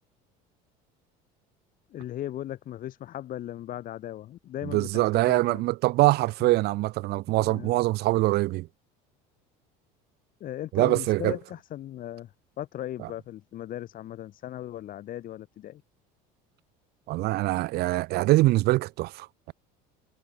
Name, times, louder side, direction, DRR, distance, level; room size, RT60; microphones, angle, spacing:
voice 1, 1.9-5.6 6.4-6.5 7.3-7.8 10.4-15.8, left 12 dB, 50° left, 6.6 m, -38 dB
voice 2, 4.7-8.7 10.7-11.4 17.1-19.5, right 19 dB, 65° right, 2.7 m, -24 dB
supercardioid pair, 115°, 18 cm